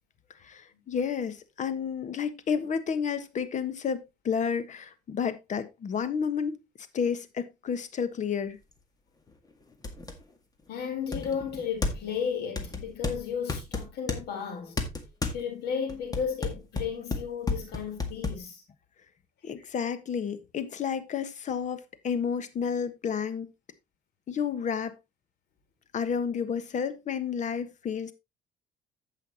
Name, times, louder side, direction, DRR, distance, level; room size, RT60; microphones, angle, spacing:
voice 1, 0.4-6.6 6.9-8.6 19.4-23.5 24.3-24.9 25.9-28.1, left 7 dB, 45° left, 1.3 m, -31 dB
sound 1, 8.7-8.8 9.3-9.4 9.8-10.2 11.1-12.2 12.6-14.2 14.8-15.4 15.9-18.4, left 3 dB, 20° left, 1.9 m, -32 dB
voice 2, 10.7-14.8 15.3-18.6, left 7 dB, 75° left, 4.3 m, -34 dB
15.0 x 5.7 x 2.9 m
cardioid pair, 110°, 17 cm